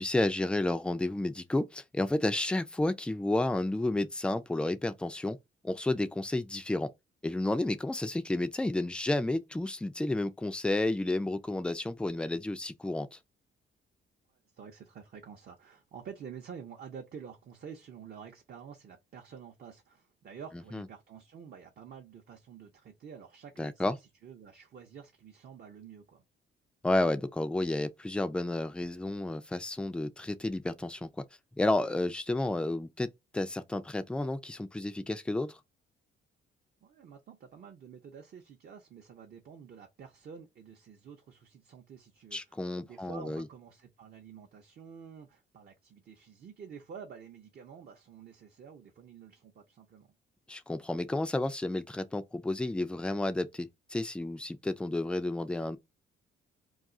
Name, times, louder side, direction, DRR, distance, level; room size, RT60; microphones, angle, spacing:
voice 1, 0.0-5.4 5.6-6.9 7.2-13.2 20.7-20.8 23.6-23.9 26.8-31.1 31.6-33.1 33.3-35.6 42.3-43.4 50.5-55.8, left 2 dB, 5° left, 0.3 m, -31 dB
voice 2, 14.5-26.2 36.8-50.1, right 7 dB, 50° right, 0.6 m, -49 dB
2.3 x 2.3 x 3.7 m
cardioid pair, 90°, 20 cm